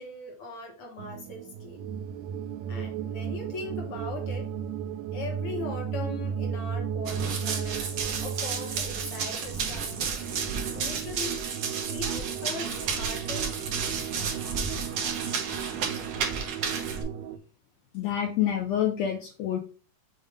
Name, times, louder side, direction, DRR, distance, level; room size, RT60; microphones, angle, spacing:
voice 1, 0.0-1.9 2.7-4.5 5.1-7.8 8.2-10.0 10.7-11.4 11.8-13.6, left 3 dB, 55° left, 1 dB, 1.8 m, -40 dB
sound 1, 1.0-17.4, right 7 dB, 80° right, 1.7 m, -35 dB
Run, 7.1-17.0, right 5 dB, 60° right, 1.9 m, -32 dB
voice 2, 17.9-19.6, left 10 dB, 75° left, 3 dB, 1.6 m, -27 dB
7.2 x 2.6 x 5.0 m, 0.34 s
omnidirectional pair, 3.8 m